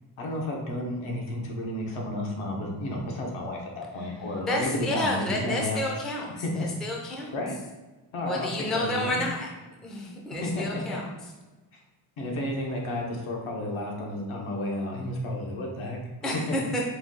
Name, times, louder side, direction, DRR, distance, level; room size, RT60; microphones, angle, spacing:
voice 1, 0.2-5.8 6.4-6.7 7.0-7.5 8.1-8.5 8.8-9.2 10.3-11.0 12.2-16.0 16.3-16.6, left 1 dB, 80° left, -1 dB, 1.1 m, -32 dB
voice 2, 4.4-6.3 6.5-7.3 8.3-9.5 9.8-11.1 16.2-16.8, left 1 dB, ahead, -1 dB, 0.4 m, -30 dB
4.6 x 2.3 x 3.8 m, 1.2 s
cardioid pair, 145°, 48 cm